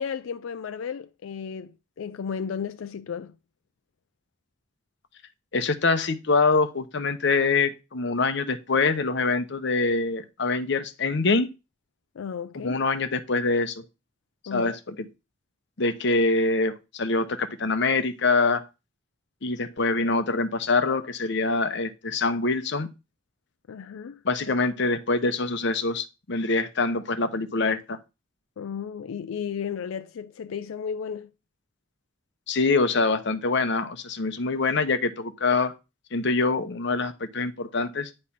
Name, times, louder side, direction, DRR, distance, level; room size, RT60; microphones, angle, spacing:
voice 1, 0.0-3.3 12.1-12.8 14.5-14.7 15.0-15.1 23.7-24.2 28.6-31.3, left 7 dB, 85° left, 0.4 m, -34 dB
voice 2, 5.5-11.5 12.6-13.8 14.5-15.0 15.8-18.6 19.4-22.9 24.2-28.0 32.5-35.7 36.1-38.1, left 3 dB, 60° left, 0.8 m, -24 dB
9.6 x 3.3 x 5.8 m
head